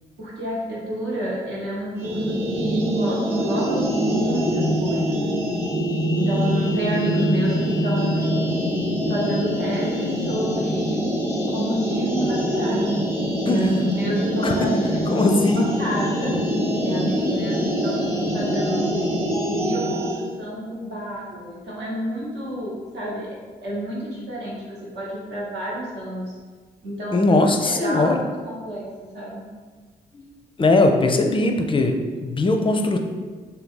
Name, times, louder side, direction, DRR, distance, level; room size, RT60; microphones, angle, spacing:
voice 1, 0.2-5.5 6.1-8.4 9.1-11.1 11.5-13.0 13.4-16.4 16.8-19.0 19.6-26.3 26.8-28.2 28.4-28.8 29.1-29.5, equal, 65° right, -5 dB, 1.1 m, -29 dB
sound 1, 2.0-20.2, equal, 10° right, 0.9 m, -24 dB
voice 2, 13.5-13.8 14.4-14.5 15.1-15.6 27.1-28.2 30.1-30.2 30.6-33.0, left 2 dB, 25° left, 4 dB, 0.5 m, -20 dB
2.7 x 2.2 x 3.7 m, 1.4 s
hypercardioid pair, 40°, 20 cm